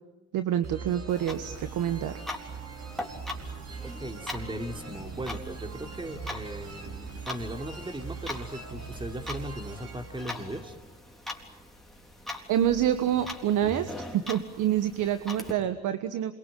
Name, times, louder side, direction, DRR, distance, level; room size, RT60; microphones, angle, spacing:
voice 1, 0.3-2.2 12.5-16.3, right 10 dB, 85° right, 10 dB, 1.3 m, -27 dB
sound 1, 0.6-11.2, right 5 dB, 55° right, 6.5 m, -41 dB
Clock, 1.1-15.5, left 1 dB, ahead, 3.8 m, -42 dB
voice 2, 3.8-10.8, equal, 15° right, 6 dB, 3.1 m, -38 dB
27.0 x 23.0 x 9.2 m, 1.0 s
cardioid pair, 90°, 30 cm